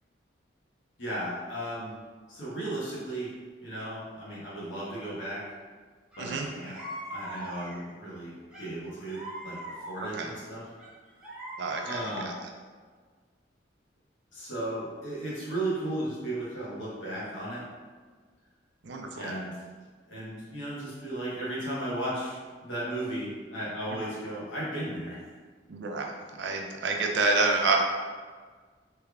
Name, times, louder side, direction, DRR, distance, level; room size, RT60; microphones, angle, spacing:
voice 1, 1.0-1.9 2.3-3.3 3.6-5.4 6.2-6.8 7.1-10.6 11.8-12.3 14.3-17.6 19.1-19.6 20.1-25.2, right 1 dB, 90° left, -7 dB, 1.2 m, -35 dB
sound 1, 6.1-6.2 6.6-8.0 8.5-10.3 10.8-12.6, right 1 dB, 5° right, 0.7 m, -41 dB
voice 2, 11.6-12.3 18.8-19.3 25.7-27.8, right 3 dB, 70° right, 2 dB, 0.4 m, -28 dB
3.3 x 3.3 x 2.3 m, 1.5 s
head